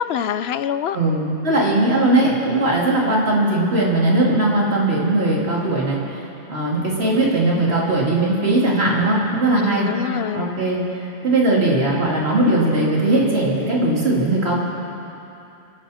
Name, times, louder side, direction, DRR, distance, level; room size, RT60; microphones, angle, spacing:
voice 1, 0.0-1.0 3.0-3.2 9.5-10.5, left 9 dB, 75° left, 13 dB, 0.8 m, -25 dB
voice 2, 0.9-6.2 6.5-9.9 10.3-10.8 11.2-14.6, right 2 dB, 75° right, -4 dB, 3.0 m, -19 dB
27.0 x 11.5 x 4.3 m, 2.8 s
omnidirectional pair, 1.1 m